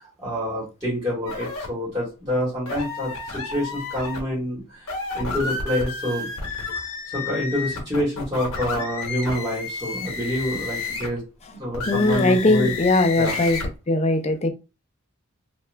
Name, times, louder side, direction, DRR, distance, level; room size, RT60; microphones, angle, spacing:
voice 1, 0.2-6.3 7.1-11.2 11.5-12.7 13.2-13.4, equal, 20° right, 1.1 m, -27 dB
sound 1, 1.3-1.7 2.7-4.2 4.8-11.2 11.7-13.7, left 3 dB, 65° left, 0.8 m, -31 dB
voice 2, 11.9-13.6 13.9-14.5, left 2 dB, 30° left, 0.4 m, -20 dB
2.3 x 2.2 x 3.1 m
head